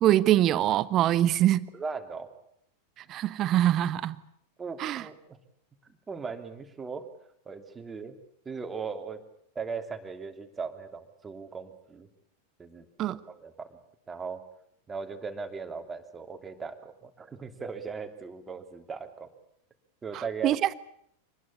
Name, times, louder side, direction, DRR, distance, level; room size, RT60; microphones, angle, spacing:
voice 1, 0.0-1.7 3.1-4.2 4.8-5.1 13.0-13.2 20.1-20.7, right 13 dB, 35° right, 17 dB, 1.1 m, -24 dB
voice 2, 1.7-2.3 4.6-5.4 6.1-7.1 7.5-8.1 8.4-9.2 9.5-12.1 12.6-13.8 14.1-14.4 14.9-19.3 20.0-20.6, right 5 dB, 15° right, 7 dB, 2.9 m, -38 dB
26.0 x 20.5 x 8.4 m, 0.71 s
figure-of-eight pair, 90°, 0 cm